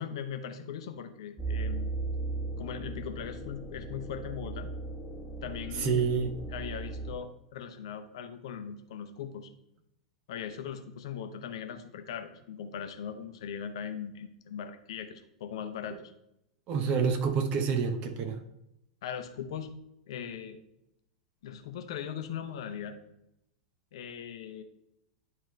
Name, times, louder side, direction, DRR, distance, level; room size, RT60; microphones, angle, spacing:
voice 1, 0.0-1.9 2.6-4.7 5.4-6.0 6.5-9.5 10.3-16.0 19.0-19.7 20.1-20.6 21.4-23.0 23.9-24.6, left 8 dB, 60° left, 7 dB, 0.8 m, -39 dB
sound 1, 1.4-7.1, right 3 dB, ahead, 1.4 m, -37 dB
voice 2, 5.8-6.3 16.7-18.4, right 6 dB, 40° right, 7 dB, 1.0 m, -28 dB
10.5 x 3.7 x 3.2 m, 0.82 s
figure-of-eight pair, 90°, 3 cm